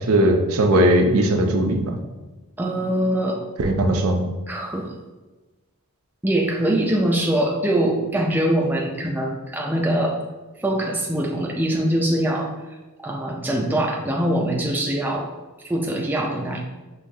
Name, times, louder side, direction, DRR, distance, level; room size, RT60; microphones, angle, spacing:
voice 1, 0.1-1.8 3.6-4.3, right 1 dB, 65° right, 3 dB, 0.5 m, -18 dB
voice 2, 2.6-3.4 4.5-5.0 6.2-10.2 10.6-12.5 13.0-15.3 15.6-16.6, right 1 dB, 10° right, -1 dB, 0.4 m, -23 dB
5.2 x 3.0 x 2.7 m, 1.2 s
head